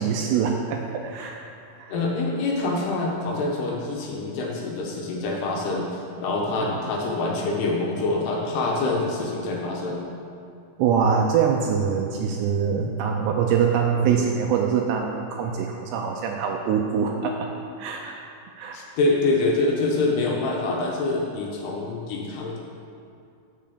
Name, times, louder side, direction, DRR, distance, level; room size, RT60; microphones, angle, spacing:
voice 1, 0.0-1.4 1.8-2.0 6.6-6.7 10.8-17.5 17.8-18.2 18.6-18.8, right 7 dB, 85° right, 2 dB, 2.5 m, -24 dB
voice 2, 1.9-10.0 13.9-14.2 18.7-22.6, left 2 dB, 75° left, -1 dB, 2.7 m, -26 dB
7.3 x 6.7 x 6.8 m, 2.5 s
omnidirectional pair, 5.3 m